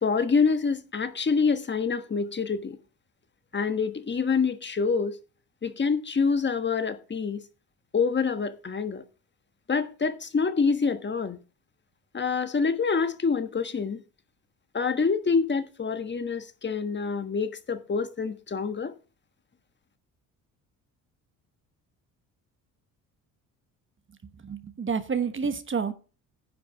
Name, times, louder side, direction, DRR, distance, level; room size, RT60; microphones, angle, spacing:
voice 1, 0.0-2.8 3.5-5.2 5.6-7.4 7.9-9.0 9.7-11.4 12.1-14.0 14.7-18.9, left 5 dB, 25° left, 1.4 m, -26 dB
voice 2, 24.4-25.9, right 6 dB, 30° right, 1.2 m, -29 dB
10.0 x 5.2 x 6.9 m
supercardioid pair, 70°, 41 cm